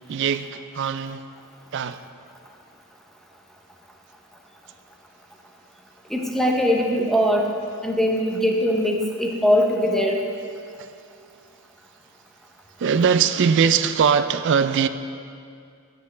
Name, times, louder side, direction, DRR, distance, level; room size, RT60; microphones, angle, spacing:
voice 1, 0.1-1.3 1.7-2.0 10.8-11.0 12.8-14.9, right 6 dB, 55° right, 0.3 m, -21 dB
voice 2, 6.1-7.5 7.8-10.2, equal, ahead, 0.7 m, -21 dB
12.5 x 7.9 x 3.4 m
head